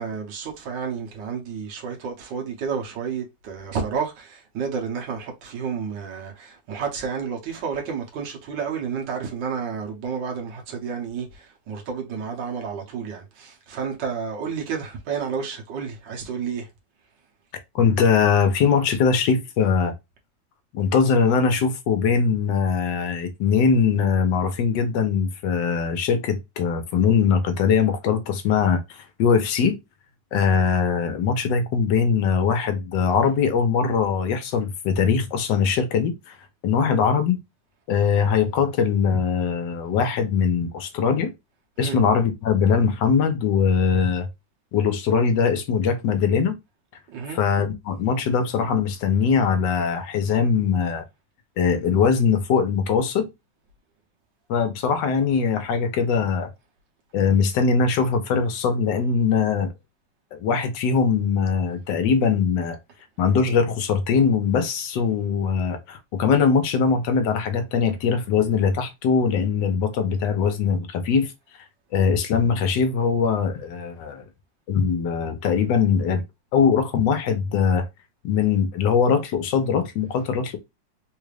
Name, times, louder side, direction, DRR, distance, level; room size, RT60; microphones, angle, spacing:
voice 1, 0.0-16.7 41.8-42.0 47.1-47.4, right 6 dB, 90° right, 1.6 m, -31 dB
voice 2, 17.7-19.9 20.7-28.8 29.2-29.8 30.3-36.1 36.6-37.4 37.9-41.3 41.8-44.3 44.7-46.6 47.3-51.0 51.6-53.3 54.5-56.5 57.1-59.7 60.3-62.8 63.2-71.3 71.9-74.2 74.7-76.2 76.5-77.8 78.2-80.6, left 6 dB, 80° left, 1.4 m, -21 dB
3.9 x 2.4 x 3.2 m
omnidirectional pair, 1.9 m